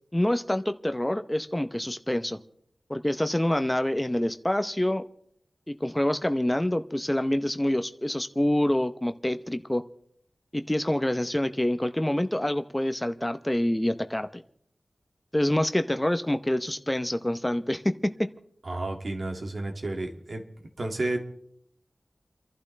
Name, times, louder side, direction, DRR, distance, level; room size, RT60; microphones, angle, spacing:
voice 1, 0.1-2.4 2.9-5.0 5.7-9.8 10.5-14.4 15.3-18.3, left 1 dB, 15° left, 8 dB, 0.8 m, -26 dB
voice 2, 18.6-20.5 20.8-21.2, right 2 dB, 65° right, 2 dB, 2.2 m, -31 dB
30.0 x 11.5 x 3.3 m, 0.68 s
wide cardioid pair, 55°, 0 cm